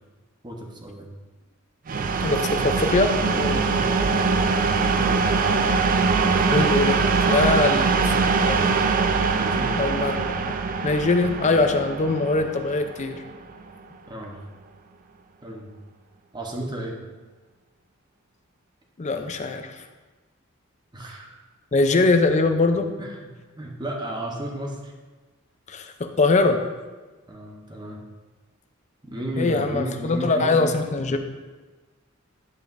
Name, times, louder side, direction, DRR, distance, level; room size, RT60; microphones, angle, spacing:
voice 1, 0.4-1.1 3.7-4.0 5.0-5.3 9.3-9.8 14.1-14.4 15.4-15.7 16.3-17.0 20.9-21.4 23.0-24.9 27.3-28.0 29.0-30.8 31.1-31.2, right 1 dB, 20° right, 0 dB, 0.9 m, -33 dB
sound 1, 1.9-13.5, right 4 dB, 40° right, 0.4 m, -22 dB
voice 2, 2.2-3.6 6.5-7.0 7.3-8.1 8.4-8.6 9.8-10.5 10.8-13.2 19.0-19.8 21.7-22.9 25.7-26.6 29.4-31.2, left 3 dB, 35° left, 7 dB, 0.5 m, -22 dB
10.5 x 5.0 x 2.6 m, 1.3 s
head